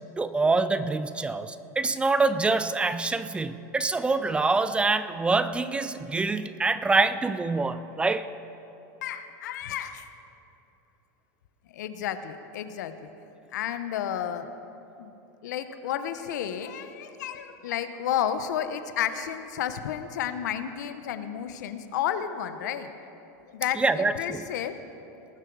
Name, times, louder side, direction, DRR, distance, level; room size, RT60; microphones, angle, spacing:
voice 1, 0.2-8.3 23.8-24.4, right 3 dB, 10° right, 13 dB, 0.3 m, -25 dB
voice 2, 9.0-10.1 11.7-13.1 13.5-14.5 15.0-15.1 15.4-22.9 23.5-24.8, left 9 dB, 85° left, 10 dB, 0.8 m, -32 dB
19.5 x 7.7 x 4.7 m, 2.9 s
supercardioid pair, 135°, 9 cm